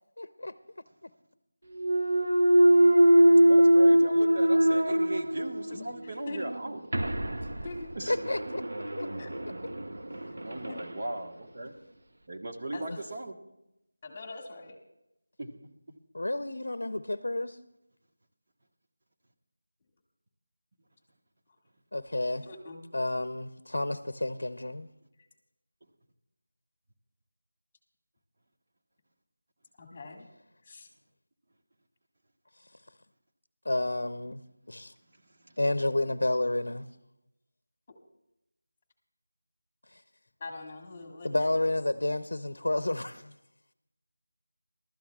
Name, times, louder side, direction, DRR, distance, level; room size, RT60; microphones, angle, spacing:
voice 1, 0.2-0.5 8.1-9.1 11.7-11.9 12.9-13.0 16.1-17.6 21.9-22.4 22.9-24.9 33.6-34.4 34.7-34.9 35.6-36.9 39.9-40.0 41.2-43.3, left 1 dB, 75° left, 11 dB, 0.6 m, -30 dB
Thump thud, 1.7-5.8 6.2-10.9, equal, 70° right, 0.8 m, -23 dB
voice 2, 3.5-6.8 7.9-8.2 10.4-11.7 12.3-13.4 15.4-15.5 35.4-35.6, right 1 dB, 45° right, 2 dB, 1.4 m, -38 dB
voice 3, 5.7-6.5 7.6-7.9 9.2-9.3 10.5-10.8 12.7-13.1 14.0-14.8 22.4-22.8 29.8-30.3 30.6-30.9 40.4-41.5, left 3 dB, 25° left, 3 dB, 1.8 m, -43 dB
23.5 x 13.0 x 2.4 m, 0.88 s
figure-of-eight pair, 170°, 0 cm